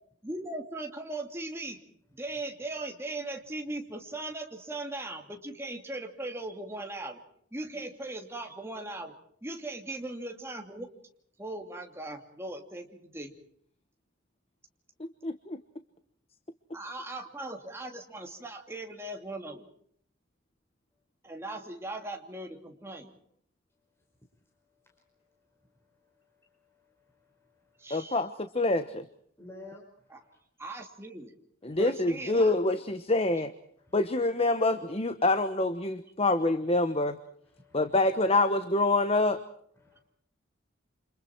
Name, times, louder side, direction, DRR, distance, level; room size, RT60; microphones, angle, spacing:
voice 1, 0.2-1.8 2.1-7.2 7.5-9.1 9.4-10.9 11.4-13.3 16.7-19.7 21.2-23.1 27.8-28.2 30.1-30.2 30.6-31.3 31.8-32.5, right 2 dB, 10° right, 2 dB, 2.8 m, -39 dB
voice 2, 15.2-15.6 27.9-29.0 31.6-33.5 33.9-37.2 37.7-39.4, left 2 dB, 30° left, 10 dB, 1.0 m, -26 dB
voice 3, 24.7-28.2 29.4-30.4 31.6-31.8 33.8-34.0 37.4-38.0 39.7-40.0, left 2 dB, 10° left, -1 dB, 5.2 m, -55 dB
29.0 x 27.0 x 4.6 m, 0.63 s
head